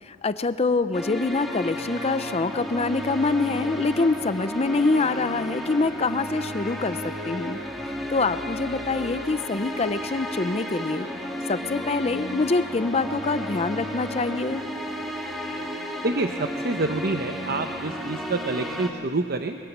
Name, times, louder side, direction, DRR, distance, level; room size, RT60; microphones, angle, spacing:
voice 1, 0.0-7.6 8.1-11.1 11.5-14.6, left 3 dB, 30° left, 12 dB, 0.5 m, -25 dB
sound 1, 0.9-18.9, equal, ahead, 2.1 m, -33 dB
voice 2, 16.0-19.6, right 3 dB, 50° right, 6 dB, 0.8 m, -27 dB
25.5 x 22.0 x 7.3 m, 2.8 s
head